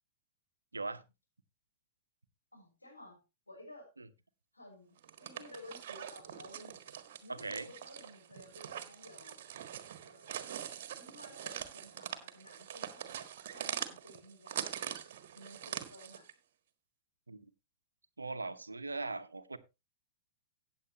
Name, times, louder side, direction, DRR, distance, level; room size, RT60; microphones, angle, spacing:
voice 1, 2.5-3.9 4.5-6.8 7.2-9.4 10.0-10.5 11.0-13.3 13.5-14.9 15.3-16.3, left 1 dB, 90° left, 0 dB, 5.9 m, -54 dB
sound 1, 5.0-16.3, right 10 dB, 55° right, 1.5 m, -43 dB
voice 2, 7.3-7.7 17.3-17.4 18.2-19.6, right 3 dB, 80° right, 12 dB, 0.9 m, -39 dB
15.0 x 8.7 x 2.9 m, 0.25 s
figure-of-eight pair, 105°, 0 cm